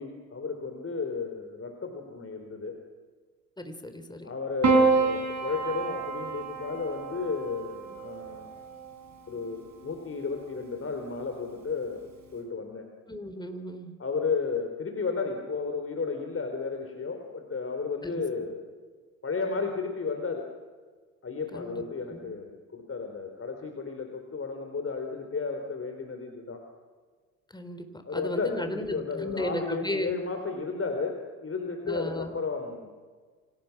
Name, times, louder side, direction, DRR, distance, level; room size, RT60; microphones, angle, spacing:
voice 1, 0.0-2.8 4.2-8.5 9.3-12.9 14.0-18.6 19.2-20.5 21.2-26.6 28.0-32.9, left 4 dB, 30° left, 4 dB, 4.2 m, -33 dB
voice 2, 3.6-4.3 13.1-13.9 18.0-18.2 21.5-21.8 22.1-22.3 27.5-27.9 28.1-30.1 31.8-32.4, left 1 dB, 10° left, 8 dB, 4.0 m, -35 dB
Piano, 4.6-9.1 10.3-11.0, right 4 dB, 40° right, 5.8 m, -28 dB
29.5 x 25.5 x 6.1 m, 1.5 s
hypercardioid pair, 55°, 44 cm